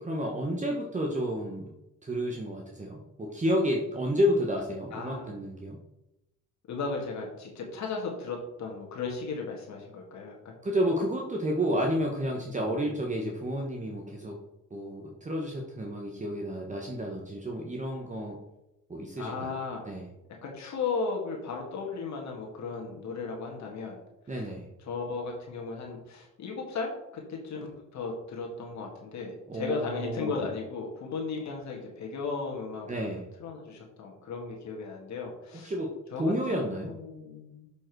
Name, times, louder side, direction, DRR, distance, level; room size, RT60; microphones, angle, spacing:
voice 1, 0.0-1.7 2.0-5.8 10.6-14.3 14.7-18.4 18.9-19.6 19.8-20.1 24.3-24.7 29.5-30.4 32.9-33.2 35.6-36.9, equal, 25° right, 0 dB, 1.2 m, -31 dB
voice 2, 4.9-5.3 6.7-10.5 12.6-12.8 19.2-19.9 20.4-24.0 24.8-33.1 33.4-35.7 36.1-37.7, left 4 dB, 65° left, 0 dB, 1.8 m, -36 dB
6.9 x 5.2 x 4.7 m, 0.91 s
cardioid pair, 90°, 30 cm